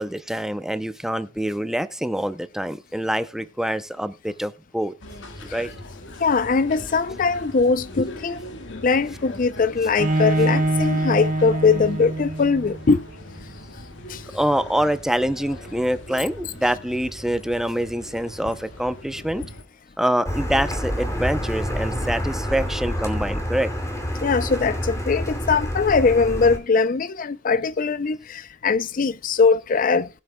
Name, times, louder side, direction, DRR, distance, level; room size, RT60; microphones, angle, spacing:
voice 1, 0.0-4.9 5.4-5.7 14.3-19.5 20.0-23.7, equal, 5° right, 0.6 m, -25 dB
sound 1, 5.0-19.6, left 1 dB, 80° left, 1.6 m, -40 dB
voice 2, 6.2-8.4 8.7-13.0 14.1-14.2 24.2-30.1, left 4 dB, 45° left, 0.5 m, -21 dB
Bowed string instrument, 10.0-12.9, right 2 dB, 45° right, 1.0 m, -24 dB
Car, 20.3-26.6, equal, 15° left, 2.6 m, -27 dB
20.5 x 8.0 x 2.2 m
head